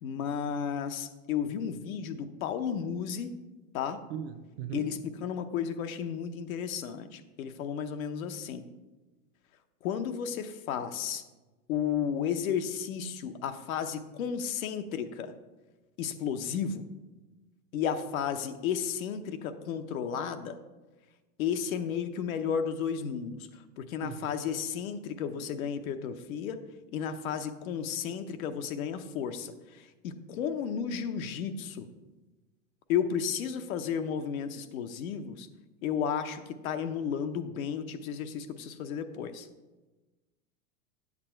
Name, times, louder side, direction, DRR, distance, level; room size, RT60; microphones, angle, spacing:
voice 1, 0.0-3.3 3.7-4.0 4.7-8.7 9.8-11.2 11.7-15.3 16.0-16.9 17.7-20.6 21.4-26.6 26.9-31.9 32.9-35.5 35.8-39.5, left 7 dB, 70° left, 9 dB, 0.9 m, -33 dB
voice 2, 4.1-4.9 24.0-24.1, right 8 dB, 40° right, 7 dB, 0.8 m, -37 dB
8.6 x 7.3 x 4.5 m, 1.2 s
supercardioid pair, 145°, 44 cm